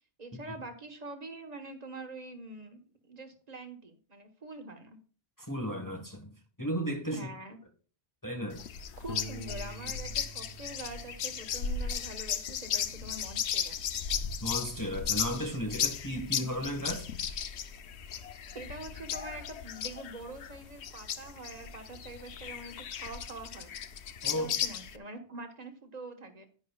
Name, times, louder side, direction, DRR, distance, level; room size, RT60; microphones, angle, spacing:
voice 1, 0.2-5.0 7.1-7.6 9.0-13.8 18.3-23.7 24.3-26.5, right 2 dB, 35° right, 1.4 m, -45 dB
voice 2, 5.4-7.2 8.2-8.6 14.4-17.1 24.2-24.5, equal, 15° left, 1.4 m, -35 dB
sound 1, 8.5-25.0, left 8 dB, 75° left, 1.0 m, -36 dB
Piano, 9.1-11.8, right 2 dB, 55° left, 1.0 m, -46 dB
10.5 x 10.5 x 2.4 m
omnidirectional pair, 1.1 m